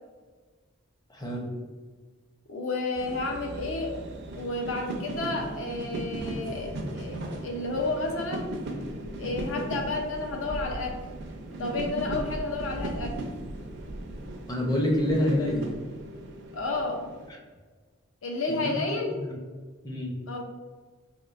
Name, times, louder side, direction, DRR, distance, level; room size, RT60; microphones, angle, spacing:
voice 1, 1.1-1.5 14.5-15.7 18.5-18.7 19.2-19.4 19.8-20.2, left 1 dB, 20° left, -1 dB, 0.6 m, -27 dB
voice 2, 2.5-4.0 4.3-8.5 9.2-11.0 11.5-13.2 16.5-17.1 18.2-19.2 20.3-20.4, left 2 dB, 75° left, 2 dB, 0.6 m, -31 dB
sound 1, 3.0-17.3, right 1 dB, 60° right, 0.4 m, -37 dB
4.3 x 2.4 x 2.4 m, 1.4 s
head